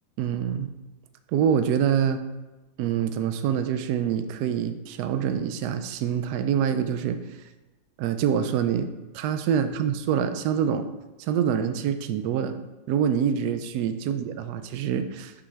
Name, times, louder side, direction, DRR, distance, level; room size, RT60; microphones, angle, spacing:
voice 1, 0.2-0.7 1.3-2.2 2.8-7.2 8.0-8.9 9.1-10.9 11.3-12.6 12.9-15.3, right 8 dB, 75° right, 9 dB, 1.0 m, -25 dB
6.1 x 3.3 x 5.8 m, 1.1 s
omnidirectional pair, 2.1 m